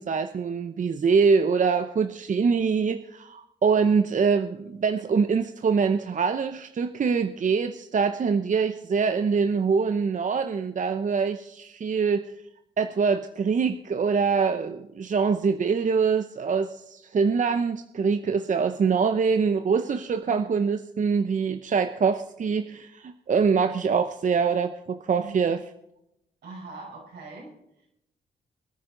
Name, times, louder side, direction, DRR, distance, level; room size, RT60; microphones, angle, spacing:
voice 1, 0.0-12.2 12.8-25.6, right 5 dB, 45° right, 9 dB, 0.8 m, -24 dB
voice 2, 20.3-20.6 25.1-25.4 26.4-27.6, right 4 dB, 85° right, -2 dB, 5.5 m, -42 dB
22.5 x 9.8 x 3.9 m, 0.83 s
cardioid pair, 65°, 17 cm